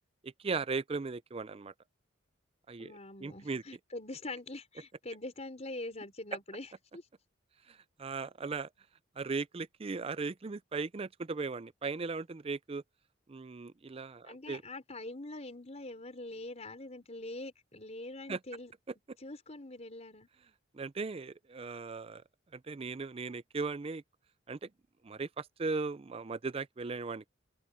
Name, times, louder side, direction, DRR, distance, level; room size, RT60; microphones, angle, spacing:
voice 1, 0.2-1.7 2.7-2.9 3.2-3.6 7.7-8.7 9.2-12.8 13.3-14.6 18.3-18.4 20.7-22.2 22.5-24.0 24.5-24.7 25.0-27.3, right 4 dB, 30° right, 0.5 m, -37 dB
voice 2, 2.8-7.0 14.2-18.7 19.2-20.3, left 2 dB, 35° left, 4.8 m, -44 dB
open air
head